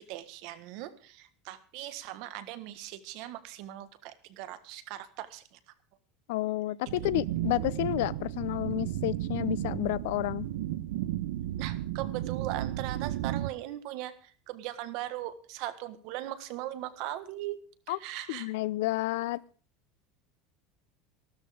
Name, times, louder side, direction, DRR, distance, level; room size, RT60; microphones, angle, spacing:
voice 1, 0.0-5.6 11.6-17.6 17.9-18.5, right 14 dB, 50° right, 11 dB, 1.5 m, -39 dB
voice 2, 6.3-10.5 17.9-18.0 18.3-19.4, left 18 dB, 75° left, 20 dB, 0.6 m, -30 dB
sound 1, 6.9-13.5, right 13 dB, 85° right, 0.9 m, -33 dB
14.5 x 13.0 x 5.1 m, 0.40 s
cardioid pair, 175°, 0 cm